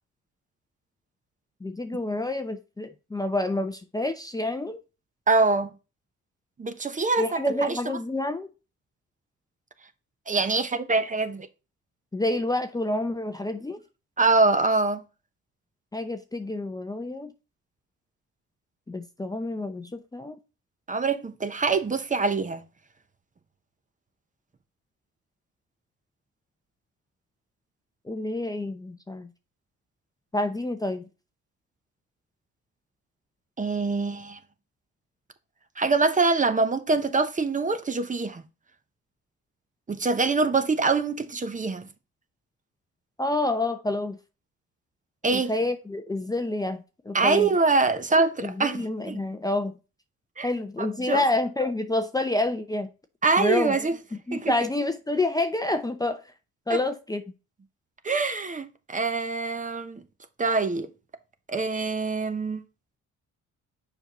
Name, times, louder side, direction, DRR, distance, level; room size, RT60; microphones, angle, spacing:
voice 1, 1.6-4.8 7.2-8.5 12.1-13.8 15.9-17.3 18.9-20.4 28.1-29.3 30.3-31.0 43.2-44.2 45.3-47.5 48.4-49.7 50.4-52.9 53.4-53.8 54.3-56.2 56.7-57.2, left 2 dB, 10° left, 0.6 m, -28 dB
voice 2, 5.3-5.7 6.6-7.8 10.3-11.5 14.2-15.0 20.9-22.6 33.6-34.4 35.8-38.4 39.9-41.8 45.2-45.5 47.1-49.2 50.4-50.5 51.1-51.2 53.2-53.9 54.3-54.5 56.7-56.8 58.0-60.0 60.4-60.9 61.5-62.6, right 3 dB, 25° right, 0.8 m, -24 dB
6.9 x 5.4 x 3.0 m
cardioid pair, 90°, 30 cm